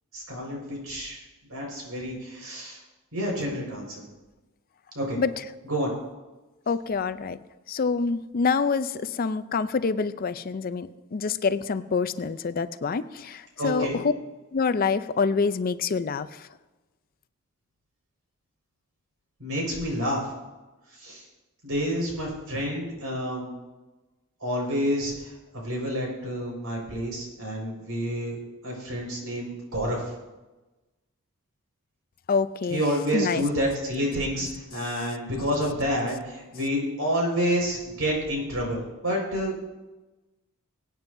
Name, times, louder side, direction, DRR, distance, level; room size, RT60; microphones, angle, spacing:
voice 1, 0.1-1.2 1.5-2.8 3.1-4.0 4.9-5.2 5.7-5.9 13.6-14.0 19.4-20.2 21.0-21.2 21.6-23.5 24.4-28.4 28.6-30.0 32.7-39.6, equal, 80° right, -1 dB, 5.0 m, -29 dB
voice 2, 6.7-7.4 7.7-14.1 14.5-16.3 32.3-32.8 33.1-33.4, left 5 dB, 40° left, 13 dB, 0.4 m, -26 dB
23.0 x 9.0 x 2.7 m, 1.1 s
head